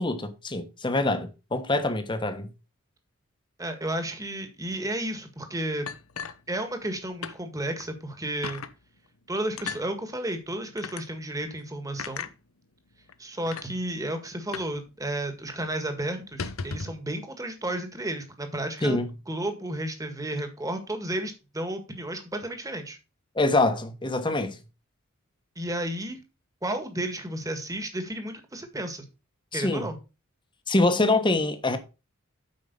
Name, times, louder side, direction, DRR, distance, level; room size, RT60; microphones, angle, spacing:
voice 1, 0.0-2.5 18.8-19.1 23.4-24.6 29.5-29.9 30.7-31.8, left 2 dB, 25° left, 1.2 m, -25 dB
voice 2, 3.6-5.9 6.5-8.6 9.3-12.3 13.2-23.0 25.5-26.2 26.6-29.0 29.5-30.0, right 1 dB, 15° right, 1.7 m, -32 dB
sound 1, 5.9-6.9 7.2-7.4 7.8-7.9 8.4-8.7 9.6-9.8 10.8-11.0 12.0-12.3 13.1-13.2 13.5-13.7 14.5-14.8 15.0-15.1 15.5-15.7 16.2-17.0, left 5 dB, 85° left, 0.8 m, -36 dB
8.6 x 5.5 x 5.3 m
head